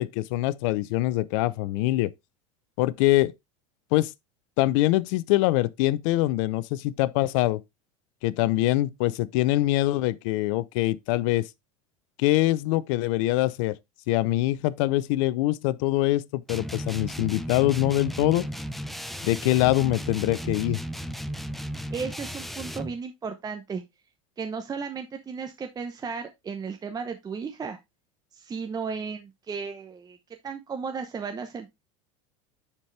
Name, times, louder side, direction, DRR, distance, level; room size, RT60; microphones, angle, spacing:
voice 1, 0.0-2.1 2.8-3.3 3.9-4.1 4.6-7.6 8.2-11.5 12.2-13.8 14.1-18.5 19.2-20.8, left 17 dB, 65° left, 0.6 m, -24 dB
sound 1, 16.5-23.0, equal, ahead, 0.6 m, -35 dB
voice 2, 21.9-23.8 24.4-27.8 28.3-30.2 30.4-31.7, right 5 dB, 20° right, 0.9 m, -34 dB
9.8 x 4.4 x 3.2 m
supercardioid pair, 105°, 17 cm